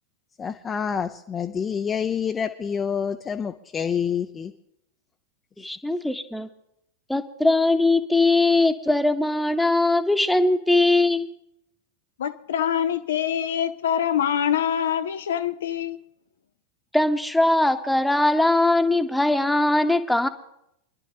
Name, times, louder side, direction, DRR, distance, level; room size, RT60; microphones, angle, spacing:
voice 1, 0.4-4.5, left 7 dB, 20° left, 0.6 m, -27 dB
voice 2, 5.6-6.5 7.1-11.3 16.9-20.3, left 2 dB, 5° left, 1.1 m, -20 dB
voice 3, 12.2-16.0, left 9 dB, 60° left, 0.6 m, -25 dB
27.5 x 11.0 x 2.9 m
figure-of-eight pair, 90°, 0 cm